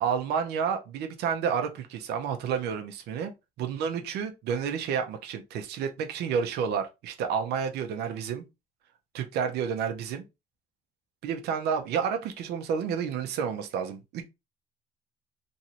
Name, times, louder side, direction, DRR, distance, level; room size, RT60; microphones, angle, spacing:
voice 1, 0.0-3.3 3.6-8.4 9.1-10.2 11.2-14.2, right 7 dB, 75° right, 0.7 m, -30 dB
3.1 x 2.7 x 2.8 m
cardioid pair, 110°, 17 cm